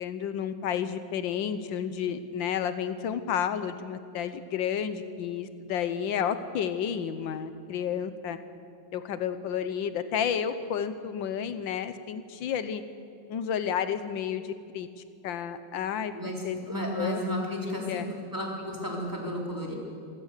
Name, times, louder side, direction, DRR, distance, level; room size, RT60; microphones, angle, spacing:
voice 1, 0.0-8.4 8.9-12.8 13.3-14.9 15.2-16.1 16.4-16.6 17.0-17.2 17.7-18.1, left 8 dB, 85° left, 11 dB, 1.6 m, -31 dB
voice 2, 16.1-18.0 18.3-19.7, equal, 10° right, -2 dB, 3.8 m, -33 dB
26.5 x 15.5 x 6.6 m, 2.4 s
omnidirectional pair, 2.0 m